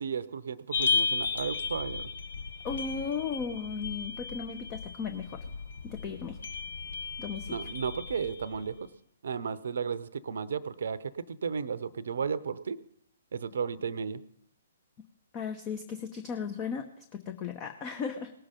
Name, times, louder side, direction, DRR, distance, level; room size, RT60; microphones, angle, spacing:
voice 1, 0.0-2.1 7.5-8.8 9.2-12.8 13.3-14.2, right 6 dB, 60° right, 16 dB, 0.8 m, -34 dB
sound 1, 0.7-8.8, left 5 dB, 65° left, 1.2 m, -34 dB
voice 2, 2.6-5.4 5.8-6.4 7.2-7.7 15.3-18.3, left 6 dB, 25° left, 7 dB, 1.0 m, -36 dB
18.5 x 6.9 x 5.3 m, 0.72 s
figure-of-eight pair, 125°, 0 cm